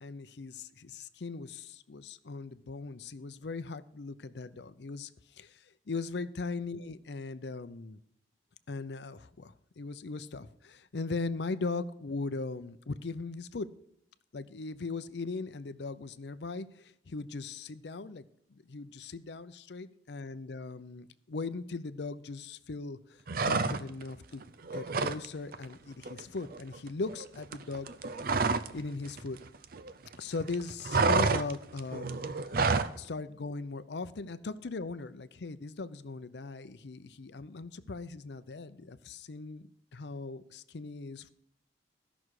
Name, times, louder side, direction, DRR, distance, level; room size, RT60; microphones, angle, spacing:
voice 1, 0.0-5.1 5.3-8.0 8.7-13.7 14.3-18.2 18.5-23.2 23.4-24.4 24.7-28.1 28.7-29.4 30.2-32.5 33.0-41.3, left 3 dB, 70° left, 13 dB, 0.6 m, -39 dB
sound 1, 23.3-24.1 24.4-25.3 25.5-25.7 26.0-28.8 29.1-30.2 30.4-33.0, right 4 dB, 55° right, 0.6 m, -29 dB
16.0 x 6.1 x 4.8 m, 0.71 s
head